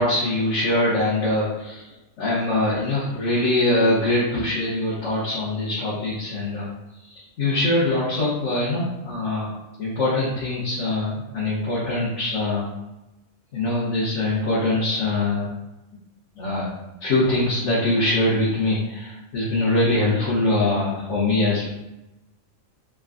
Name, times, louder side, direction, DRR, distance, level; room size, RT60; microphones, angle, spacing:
voice 1, 0.0-1.8 2.2-6.7 7.4-9.5 9.8-12.7 13.5-15.5 16.4-16.7 17.0-21.7, left 2 dB, 70° left, -9 dB, 1.4 m, -23 dB
3.7 x 2.3 x 3.7 m, 0.97 s
omnidirectional pair, 1.3 m